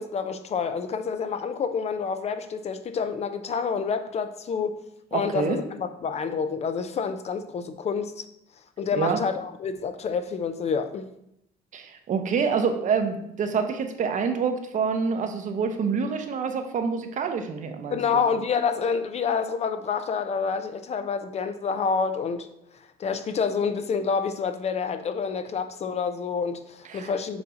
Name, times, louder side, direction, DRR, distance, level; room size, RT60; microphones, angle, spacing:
voice 1, 0.0-4.8 5.1-8.2 8.8-11.1 17.9-22.5 23.0-27.4, left 5 dB, 40° left, 9 dB, 0.5 m, -28 dB
voice 2, 5.1-5.6 9.0-9.2 11.7-18.2 26.9-27.1, right 5 dB, 50° right, 6 dB, 0.8 m, -27 dB
7.0 x 2.7 x 5.0 m, 0.78 s
cardioid pair, 110°, 17 cm